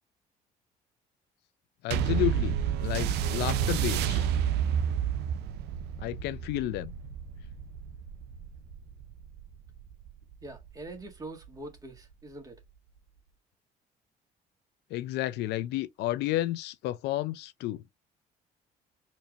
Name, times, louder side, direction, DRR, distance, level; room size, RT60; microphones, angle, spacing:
voice 1, 1.8-4.3 6.0-6.9 14.9-17.8, left 15 dB, 80° left, 0.5 m, -31 dB
sound 1, 1.9-10.7 11.4-11.5, right 8 dB, 80° right, 0.5 m, -30 dB
voice 2, 10.4-12.6, right 2 dB, 20° right, 1.6 m, -44 dB
4.4 x 2.7 x 2.4 m
cardioid pair, 110°, 17 cm